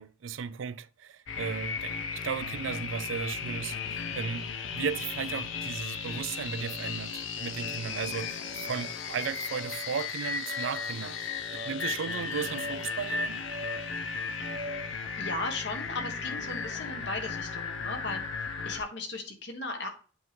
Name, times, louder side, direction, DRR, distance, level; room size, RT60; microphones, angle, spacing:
voice 1, 0.0-13.4, right 6 dB, 85° right, 0.4 m, -36 dB
sound 1, 1.3-18.8, left 5 dB, 85° left, 0.7 m, -35 dB
sound 2, 3.6-3.8 4.5-4.9 5.5-5.9 6.5-6.9 7.5-7.9 8.5-15.1, equal, 60° right, 0.8 m, -45 dB
voice 2, 15.2-18.2 18.6-19.9, left 2 dB, 65° left, 1.4 m, -36 dB
7.8 x 3.1 x 5.1 m
head